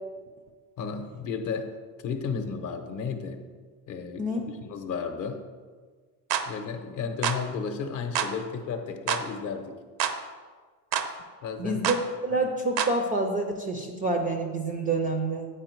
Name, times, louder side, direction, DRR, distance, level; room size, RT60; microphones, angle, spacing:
voice 1, 0.8-1.7 2.0-3.4 3.9-4.3 4.6-5.4 6.5-9.7 11.4-11.9, left 5 dB, 40° left, 6 dB, 0.8 m, -33 dB
sound 1, 6.3-6.5 7.2-7.4 8.1-8.3 9.1-9.3 10.0-10.2 10.9-11.1 11.8-12.0 12.8-13.0, right 8 dB, 85° right, 0.8 m, -27 dB
voice 2, 11.6-12.0 12.2-15.5, right 2 dB, 20° right, 3 dB, 0.4 m, -27 dB
8.8 x 4.5 x 4.5 m, 1.5 s
supercardioid pair, 125°, 49 cm